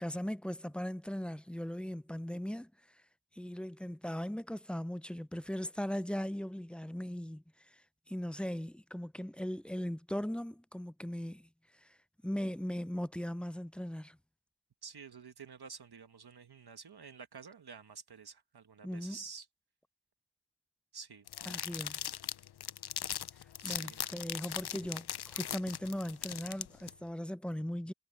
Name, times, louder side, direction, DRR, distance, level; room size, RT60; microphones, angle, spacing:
voice 1, 0.0-3.0 3.3-7.8 8.1-12.0 12.2-14.2 18.8-19.2 21.5-22.0 23.6-27.9, equal, 5° left, 0.3 m, -39 dB
voice 2, 14.8-19.5 20.9-21.3 23.6-24.1, right 5 dB, 65° right, 1.2 m, -49 dB
sound 1, 21.3-26.9, left 10 dB, 65° left, 0.5 m, -39 dB
wide cardioid pair, 60°, 42 cm